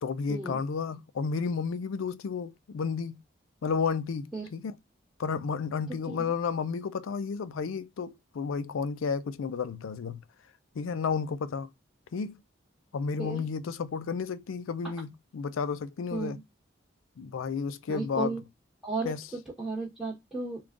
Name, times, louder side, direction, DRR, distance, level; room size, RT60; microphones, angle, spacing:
voice 1, 0.0-3.2 3.6-4.7 5.2-10.2 10.8-11.7 12.1-12.4 12.9-16.4 17.2-18.4 19.0-19.2, left 5 dB, 85° left, 0.4 m, -32 dB
voice 2, 16.1-16.4 17.9-18.4 18.8-20.6, right 3 dB, ahead, 1.1 m, -34 dB
3.6 x 2.3 x 3.6 m
head